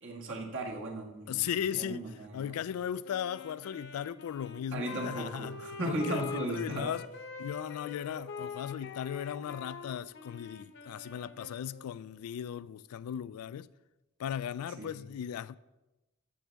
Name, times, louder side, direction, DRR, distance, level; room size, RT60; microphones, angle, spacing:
voice 1, 0.0-2.5 4.7-6.9 14.8-15.0, right 1 dB, 60° right, 1.7 m, -37 dB
voice 2, 1.3-7.0 7.4-13.7 14.2-15.6, left 9 dB, 90° left, 0.3 m, -37 dB
Wind instrument woodwind instrument, 3.0-12.0, left 5 dB, 60° left, 0.8 m, -44 dB
13.5 x 6.9 x 3.4 m
head